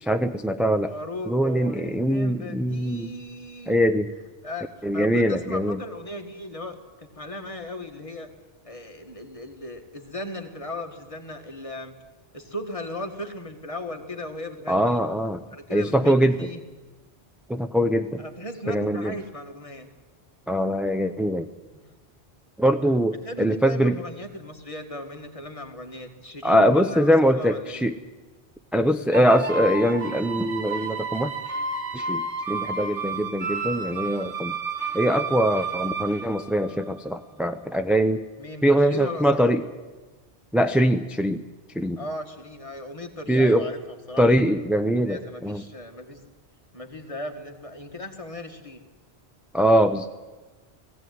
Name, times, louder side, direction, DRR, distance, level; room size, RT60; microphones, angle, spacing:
voice 1, 0.0-0.9 1.3-3.1 3.7-4.1 4.8-5.8 14.7-15.4 15.7-16.4 17.5-18.2 18.7-19.1 20.5-21.5 22.6-23.9 26.4-28.0 28.7-31.3 31.9-34.5 34.9-38.2 38.6-39.6 40.5-41.4 41.7-42.0 43.3-43.7 44.2-45.6 49.5-50.1, equal, ahead, 7 dB, 0.6 m, -22 dB
voice 2, 0.9-3.8 4.4-8.3 8.6-11.9 12.3-15.0 15.5-16.6 18.2-19.9 23.2-27.9 38.4-39.5 42.0-43.8 44.1-44.4 45.0-46.2 46.7-48.8, left 1 dB, 30° left, 3 dB, 2.0 m, -37 dB
sound 1, 29.1-37.1, right 4 dB, 60° right, 1.8 m, -31 dB
18.0 x 17.0 x 9.5 m, 1.2 s
omnidirectional pair, 1.1 m